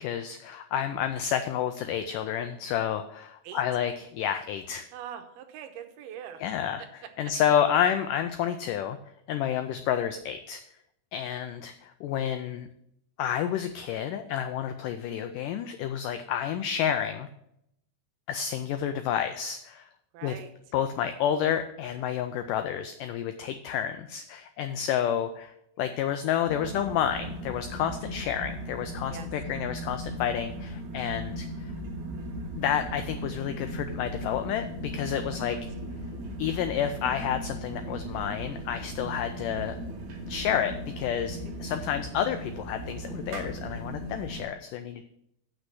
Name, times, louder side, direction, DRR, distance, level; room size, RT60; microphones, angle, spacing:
voice 1, 0.0-4.8 6.4-6.8 7.2-9.0 9.3-10.6 11.1-12.7 13.2-17.3 18.3-19.9 20.2-20.3 20.7-31.7 32.5-35.6 36.4-39.8 40.3-45.0, left 9 dB, 90° left, 8 dB, 1.8 m, -30 dB
voice 2, 4.9-7.6 9.6-9.8 20.1-20.5 29.1-29.3 35.3-35.6, right 9 dB, 85° right, 6 dB, 2.9 m, -44 dB
sound 1, 26.5-44.4, right 1 dB, 65° right, 2.7 m, -37 dB
8.2 x 6.5 x 6.0 m, 0.76 s
omnidirectional pair, 4.4 m